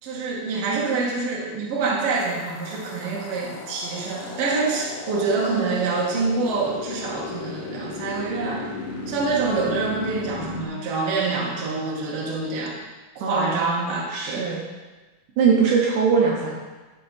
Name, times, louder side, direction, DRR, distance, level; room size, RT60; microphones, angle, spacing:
voice 1, 0.0-8.7 9.1-12.8 13.2-14.5, right 3 dB, 55° right, -3 dB, 1.9 m, -26 dB
sound 1, 2.2-10.7, left 3 dB, 65° left, 1.8 m, -35 dB
voice 2, 13.2-13.8 14.1-14.6 15.4-16.6, right 5 dB, 75° right, -2 dB, 2.2 m, -21 dB
11.0 x 4.3 x 4.0 m, 1.2 s
omnidirectional pair, 3.9 m